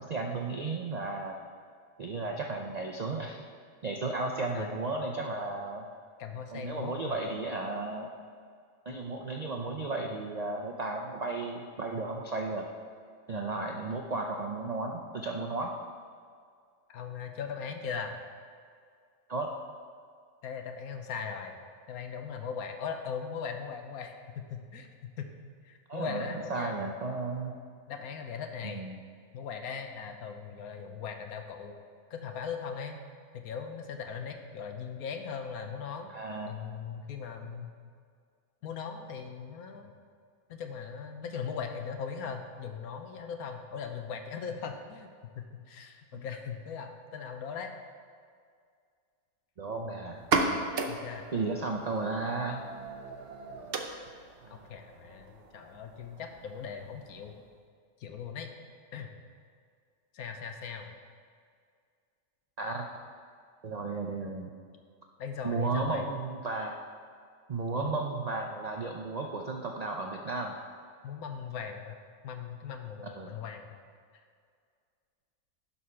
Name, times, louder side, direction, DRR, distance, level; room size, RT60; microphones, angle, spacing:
voice 1, 0.0-1.4 2.0-3.4 3.8-5.8 6.5-8.1 8.9-12.7 13.3-15.7 19.3-19.5 25.9-27.5 28.7-29.0 36.1-36.5 49.6-50.2 51.3-52.6 54.4-54.6 62.6-62.9 63.6-64.5 65.4-66.8 67.5-70.6 73.0-73.4, right 3 dB, 90° right, 1 dB, 0.3 m, -34 dB
voice 2, 6.2-7.3 8.9-9.0 13.3-13.5 16.9-18.1 20.4-21.6 21.9-25.3 25.6-26.8 27.9-28.8 29.3-31.8 32.1-33.0 33.3-36.1 36.5-37.7 38.6-39.9 40.5-45.1 45.3-47.7 50.9-51.3 54.5-57.4 58.0-58.5 58.9-59.1 60.1-60.9 65.2-66.1 67.8-68.1 71.0-72.0 72.2-73.8, left 6 dB, 80° left, 5 dB, 1.2 m, -39 dB
sound 1, 50.1-57.6, right 3 dB, 50° right, 0.7 m, -36 dB
11.0 x 4.3 x 5.7 m, 2.1 s
omnidirectional pair, 1.5 m